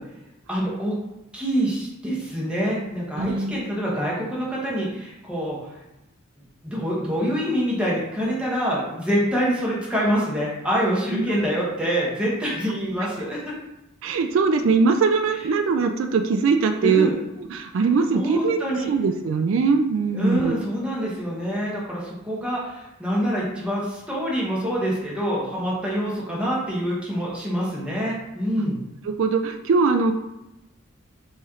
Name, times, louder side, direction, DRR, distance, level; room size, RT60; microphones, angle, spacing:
voice 1, 0.5-1.0 1.3-5.6 6.6-13.5 16.8-17.1 18.1-18.9 20.1-28.8, equal, 5° right, -6 dB, 1.2 m, -25 dB
voice 2, 3.2-3.5 11.1-11.3 14.0-17.1 17.4-18.6 18.9-20.6 29.0-30.1, right 4 dB, 70° right, 6 dB, 0.3 m, -21 dB
4.1 x 3.1 x 3.7 m, 0.91 s
head